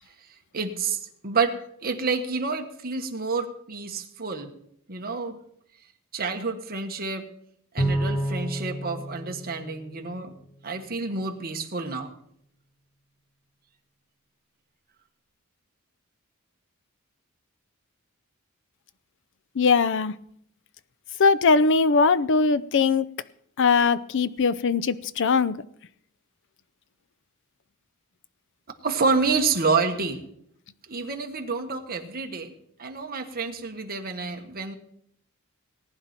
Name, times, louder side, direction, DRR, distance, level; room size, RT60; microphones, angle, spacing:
voice 1, 0.5-4.5 4.9-5.4 6.1-7.3 7.7-10.3 10.6-12.1 28.8-30.2 30.9-32.5 32.8-34.7, right 4 dB, 45° right, 4 dB, 1.5 m, -28 dB
Bowed string instrument, 7.8-10.4, right 1 dB, 40° left, 1.7 m, -29 dB
voice 2, 19.6-20.2 21.2-23.1 23.6-25.6, left 4 dB, 60° left, 17 dB, 0.6 m, -20 dB
19.0 x 10.5 x 4.4 m, 0.71 s
head